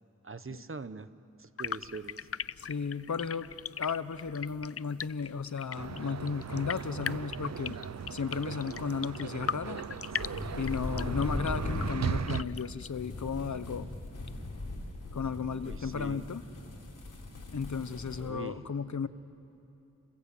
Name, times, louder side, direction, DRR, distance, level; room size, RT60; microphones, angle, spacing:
voice 1, 0.2-1.1 1.4-2.2 15.6-16.3 18.2-18.6, right 4 dB, 45° right, 13 dB, 1.1 m, -42 dB
sound 1, 1.6-12.9, left 7 dB, 50° left, 0.5 m, -41 dB
voice 2, 2.6-3.5 3.8-7.8 8.1-9.8 10.5-13.9 15.1-16.4 17.5-19.1, left 5 dB, 65° left, 13 dB, 1.0 m, -34 dB
sound 2, 5.8-12.4, right 7 dB, 60° right, 0.6 m, -38 dB
sound 3, 10.2-18.3, left 2 dB, 85° left, 4.3 m, -39 dB
30.0 x 20.5 x 8.5 m, 3.0 s
cardioid pair, 40°, 31 cm